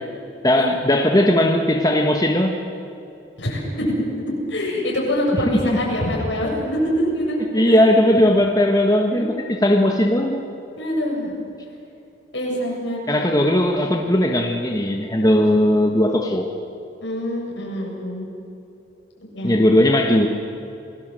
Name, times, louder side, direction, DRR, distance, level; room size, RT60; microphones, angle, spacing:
voice 1, 0.4-2.6 5.5-5.8 7.5-10.4 13.1-16.5 19.4-20.3, left 1 dB, 20° left, 2 dB, 1.4 m, -18 dB
voice 2, 3.4-3.9 4.5-7.9 9.1-9.3 10.8-11.4 12.3-13.1 17.0-18.3 19.2-19.5, equal, 75° left, -2 dB, 7.6 m, -24 dB
28.0 x 19.0 x 7.7 m, 2.7 s
head